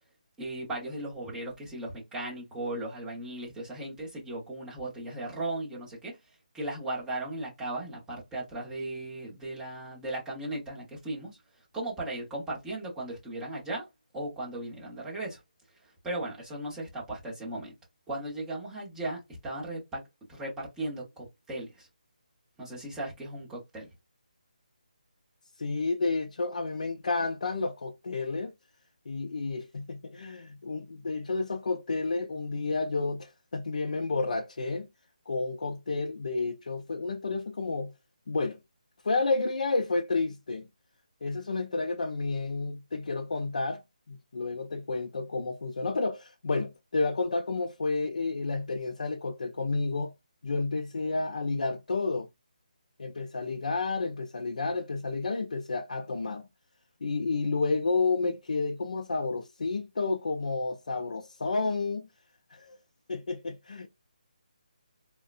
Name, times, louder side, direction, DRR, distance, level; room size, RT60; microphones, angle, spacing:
voice 1, 0.4-6.2 6.5-11.4 11.7-13.8 14.1-15.4 16.0-17.7 18.1-20.0 20.3-21.9 22.6-23.9, right 2 dB, 5° right, 0.9 m, -37 dB
voice 2, 25.6-28.5 29.1-34.9 35.3-37.9 38.3-38.6 39.0-40.7 41.2-43.8 44.1-50.1 50.4-52.3 53.0-56.5 57.0-62.1 62.5-62.8 63.1-63.9, left 3 dB, 60° left, 0.5 m, -31 dB
3.6 x 2.2 x 2.4 m
hypercardioid pair, 170°, 5 cm